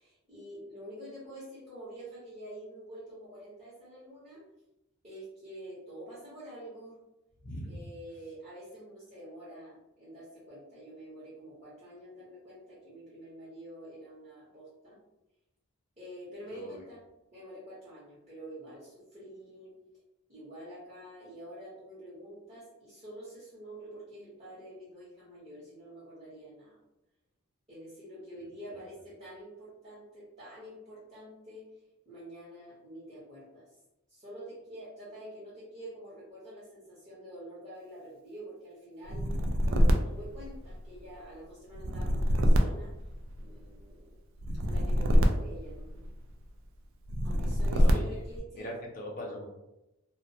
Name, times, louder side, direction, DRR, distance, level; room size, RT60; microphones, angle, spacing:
voice 1, 0.0-4.4 5.0-7.0 7.7-15.0 16.0-17.0 17.3-19.8 20.3-26.8 27.7-31.6 32.0-33.6 34.1-39.3 39.6-42.9 43.4-44.2 44.6-46.0 47.2-48.7, right 1 dB, 30° right, -10 dB, 0.8 m, -47 dB
voice 2, 7.4-7.8 16.5-16.8 47.7-48.1 48.5-49.5, left 1 dB, 40° left, -1 dB, 0.5 m, -40 dB
sound 1, 39.1-41.0 41.7-43.7 44.4-46.3 47.1-48.4, equal, 60° right, 0.3 m, -26 dB
2.2 x 2.1 x 2.7 m, 0.92 s
head